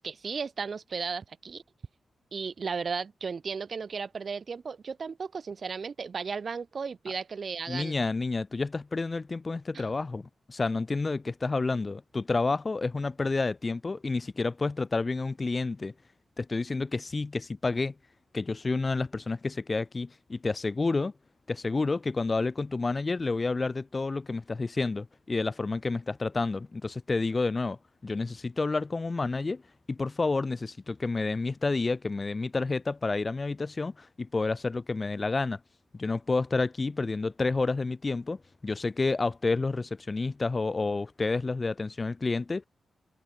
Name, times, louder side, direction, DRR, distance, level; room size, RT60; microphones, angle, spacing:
voice 1, 0.0-1.6 2.3-8.0 9.7-9.9, right 5 dB, 50° right, 2.0 m, -35 dB
voice 2, 7.7-15.9 16.4-17.9 18.3-21.1 21.5-29.6 29.9-35.6 35.9-42.6, left 3 dB, 30° left, 0.6 m, -30 dB
wide cardioid pair, 115°, 0 cm